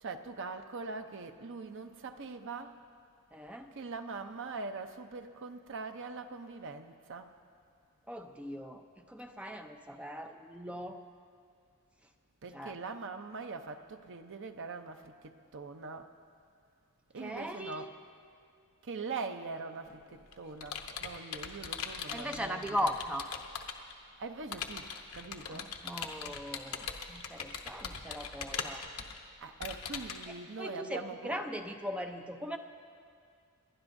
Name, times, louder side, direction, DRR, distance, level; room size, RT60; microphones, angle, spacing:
voice 1, 0.0-2.8 3.7-7.4 12.4-16.1 17.1-17.9 18.8-22.9 24.2-25.8 29.4-31.4, right 4 dB, 55° right, 7 dB, 0.6 m, -42 dB
voice 2, 3.3-3.7 8.1-11.0 12.5-12.8 17.2-17.9 22.1-23.2 25.5-28.9 30.6-32.6, equal, 5° right, 5 dB, 0.5 m, -39 dB
Computer keyboard, 19.9-23.9 24.5-30.3, left 6 dB, 75° left, 0.9 m, -41 dB
28.5 x 11.5 x 2.6 m, 2.3 s
head